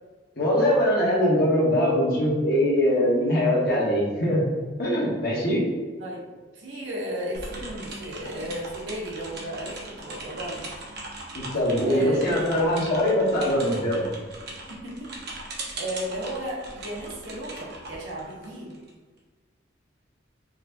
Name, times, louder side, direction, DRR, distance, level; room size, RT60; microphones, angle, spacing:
voice 1, 0.4-4.4 4.8-5.6 11.3-14.0, equal, 55° left, -5 dB, 1.1 m, -22 dB
voice 2, 6.5-10.7 11.9-12.6 14.7-15.1 15.7-18.7, equal, 85° right, -3 dB, 0.9 m, -34 dB
sound 1, 7.3-18.9, right 2 dB, 60° right, 0.8 m, -39 dB
4.8 x 2.7 x 2.2 m, 1.4 s
head